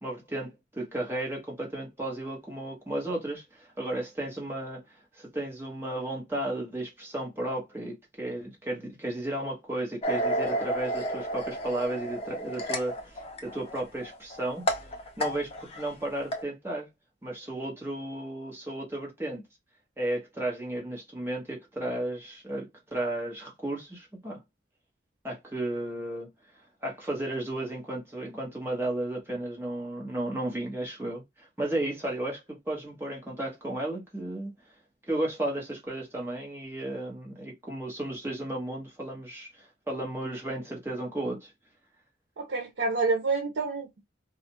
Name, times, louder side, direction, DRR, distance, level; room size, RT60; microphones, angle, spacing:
voice 1, 0.0-14.9 15.2-16.9 17.2-19.4 20.0-24.4 25.2-26.3 26.8-34.5 35.1-41.5, right 1 dB, 15° right, 0.8 m, -34 dB
sound 1, 10.0-15.9 16.2-16.4, equal, 30° left, 0.4 m, -32 dB
voice 2, 42.4-44.0, right 3 dB, 80° right, 0.6 m, -28 dB
2.4 x 2.0 x 2.7 m
head